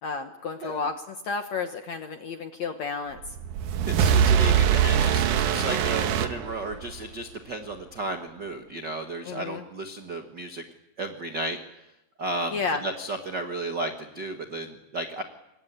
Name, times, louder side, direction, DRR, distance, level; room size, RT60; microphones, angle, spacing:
voice 1, 0.0-3.4 9.2-9.6 12.5-12.8, left 5 dB, 65° left, 7 dB, 1.7 m, -32 dB
sound 1, 3.2-7.0, right 8 dB, 65° right, 2.1 m, -22 dB
voice 2, 3.9-10.6 11.0-11.6 12.2-15.2, right 1 dB, 85° right, 6 dB, 0.9 m, -33 dB
26.5 x 23.0 x 8.8 m, 0.89 s
omnidirectional pair, 4.7 m